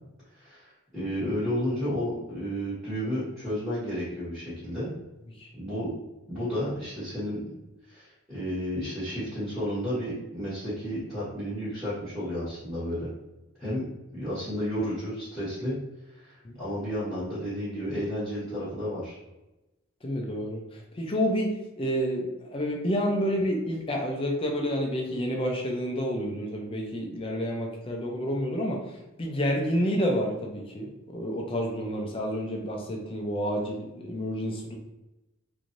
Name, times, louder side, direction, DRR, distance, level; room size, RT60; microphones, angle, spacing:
voice 1, 0.3-4.9 5.6-5.9 6.3-7.6 7.9-13.1 13.6-13.8 14.1-15.7 16.1-19.2, equal, 10° right, -14 dB, 1.3 m, -32 dB
voice 2, 20.0-28.8 29.2-34.8, equal, 25° left, 1 dB, 0.4 m, -29 dB
3.0 x 2.6 x 2.6 m, 0.99 s
head